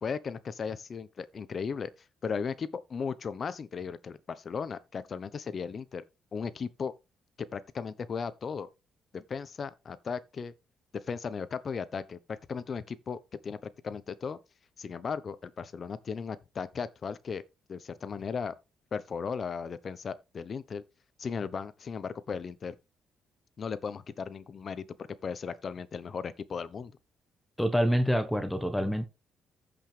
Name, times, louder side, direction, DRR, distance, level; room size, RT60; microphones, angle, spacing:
voice 1, 0.0-1.9 2.2-6.0 6.3-6.9 7.4-8.7 9.1-10.5 10.9-14.4 14.8-18.6 18.9-20.8 21.2-22.7 23.6-27.0, left 6 dB, 45° left, 1.0 m, -36 dB
voice 2, 27.6-29.0, equal, 5° left, 1.2 m, -26 dB
15.0 x 5.5 x 3.4 m
cardioid pair, 90°, 0 cm